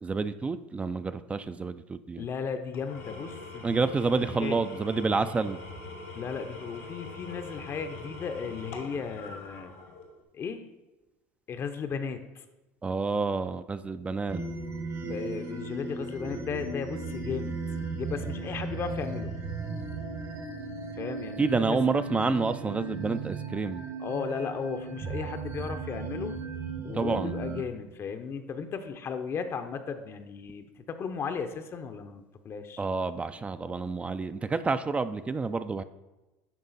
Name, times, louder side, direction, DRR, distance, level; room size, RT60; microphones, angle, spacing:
voice 1, 0.0-2.3 3.6-5.6 12.8-14.4 21.4-23.8 26.9-27.3 32.8-35.8, right 4 dB, 20° right, 12 dB, 0.4 m, -29 dB
voice 2, 2.2-3.8 4.4-4.7 6.1-9.7 10.3-10.6 11.5-12.4 15.0-17.6 18.0-19.4 21.0-21.8 24.0-26.3 26.8-32.8, left 6 dB, 40° left, 8 dB, 0.6 m, -35 dB
Engine / Tools, 2.7-10.2, left 3 dB, 85° left, 1.3 m, -43 dB
sound 1, 14.3-27.6, right 4 dB, 45° right, 1.1 m, -36 dB
10.5 x 3.6 x 4.0 m, 1.1 s
supercardioid pair, 95°, 7 cm